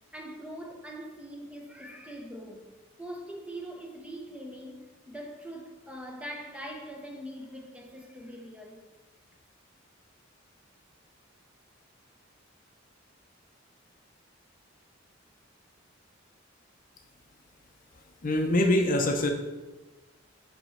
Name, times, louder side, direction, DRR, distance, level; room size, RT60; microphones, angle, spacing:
voice 1, 0.1-2.7 3.0-8.8, equal, 5° right, 0.8 m, -42 dB
voice 2, 18.2-19.3, left 1 dB, 45° left, 0.6 m, -24 dB
7.8 x 3.1 x 5.6 m
head